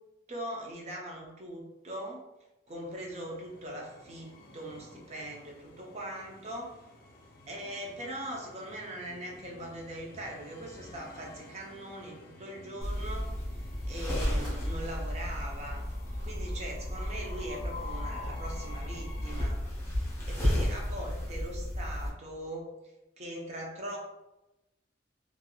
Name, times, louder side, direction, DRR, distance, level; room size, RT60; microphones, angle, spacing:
voice 1, 0.3-2.2 2.7-6.8 7.5-13.3 13.6-15.8 16.2-19.6 20.3-22.7 23.2-24.0, right 1 dB, 35° right, -1 dB, 0.6 m, -41 dB
Train, 2.7-19.5, left 3 dB, 55° left, 0.4 m, -50 dB
sound 1, 12.8-22.1, equal, 15° left, 0.8 m, -33 dB
sound 2, 13.8-15.5 16.5-16.6, equal, 65° right, 1.3 m, -54 dB
3.2 x 2.4 x 2.2 m, 0.97 s
head